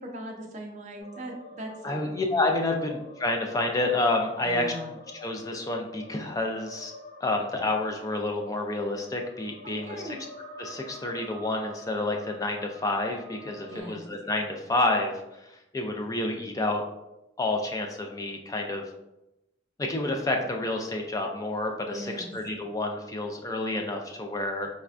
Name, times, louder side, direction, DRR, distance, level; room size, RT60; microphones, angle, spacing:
voice 1, 0.0-2.1 4.4-4.9 9.6-10.2 13.7-14.0 21.9-22.3, right 1 dB, 40° right, 1 dB, 0.5 m, -39 dB
sound 1, 1.0-13.8, left 1 dB, 45° left, 1.3 m, -47 dB
voice 2, 1.8-4.7 5.2-6.9 7.2-10.2 10.6-15.1 15.5-16.8 17.4-18.8 19.8-24.7, left 2 dB, 20° left, 3 dB, 0.3 m, -29 dB
4.1 x 2.2 x 2.4 m, 0.91 s
head